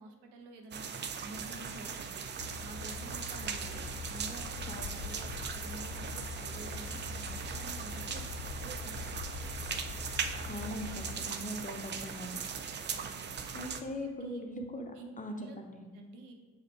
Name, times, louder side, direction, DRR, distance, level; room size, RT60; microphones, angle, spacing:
voice 1, 0.0-2.3 2.5-4.6 4.9-8.3 8.6-9.5 12.9-13.3 13.7-13.9 14.2-14.4 14.9-15.6 15.9-16.3, right 2 dB, 55° right, 4 dB, 1.0 m, -49 dB
sound 1, 0.7-13.8, right 6 dB, 25° right, 0.5 m, -39 dB
Train / Engine, 2.4-11.1, left 4 dB, 55° left, 0.7 m, -43 dB
voice 2, 4.7-5.0 10.5-12.4 13.5-15.8, left 1 dB, 15° left, 3 dB, 0.8 m, -41 dB
5.8 x 5.0 x 4.4 m, 1.4 s
figure-of-eight pair, 50°, 46 cm